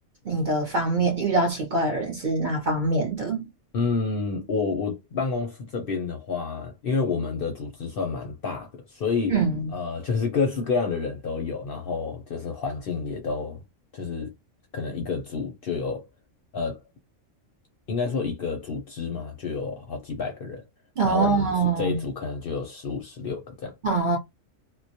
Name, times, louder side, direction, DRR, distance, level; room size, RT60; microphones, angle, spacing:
voice 1, 0.2-3.5 9.3-9.7 21.0-22.0 23.8-24.2, right 3 dB, 45° right, 0.7 m, -24 dB
voice 2, 3.7-9.3 9.7-13.6 13.9-14.3 14.7-16.1 16.5-16.8 17.9-20.6 21.0-21.5 21.8-23.7, left 4 dB, 60° left, 0.6 m, -29 dB
2.2 x 2.1 x 2.6 m
omnidirectional pair, 1.3 m